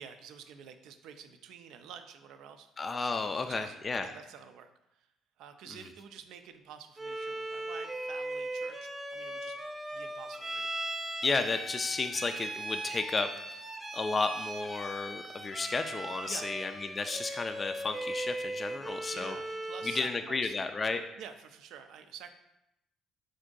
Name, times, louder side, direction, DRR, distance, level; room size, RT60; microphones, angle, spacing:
voice 1, 0.0-2.7 3.5-4.7 5.0-5.1 5.4-9.6 9.9-10.7 16.3-16.5 19.1-20.5 21.2-22.3, right 7 dB, 75° right, 8 dB, 0.3 m, -49 dB
voice 2, 2.8-4.1 11.2-13.6 13.9-19.4 19.8-21.1, left 3 dB, 35° left, 7 dB, 0.3 m, -33 dB
Bowed string instrument, 7.0-20.1, right 1 dB, 15° right, 0.7 m, -39 dB
4.5 x 2.6 x 3.7 m, 0.87 s
supercardioid pair, 65°, 0 cm